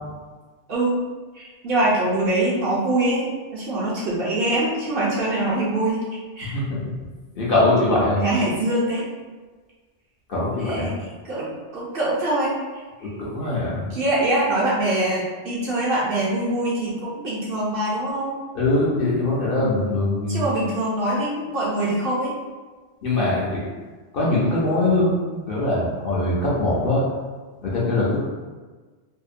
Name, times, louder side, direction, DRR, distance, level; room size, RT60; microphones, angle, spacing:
voice 1, 0.7-1.0 1.3-6.0 6.4-6.5 8.2-9.0 10.6-10.9 11.2-12.5 13.0-13.1 13.9-18.3 20.3-22.3, right 1 dB, 60° right, -6 dB, 0.7 m, -23 dB
voice 2, 6.5-6.9 7.4-8.2 10.3-10.9 13.0-13.8 18.5-20.4 23.0-23.6 24.1-25.2 25.5-27.1 27.6-28.2, left 2 dB, 55° left, -7 dB, 0.7 m, -22 dB
2.7 x 2.1 x 2.4 m, 1.4 s
omnidirectional pair, 1.2 m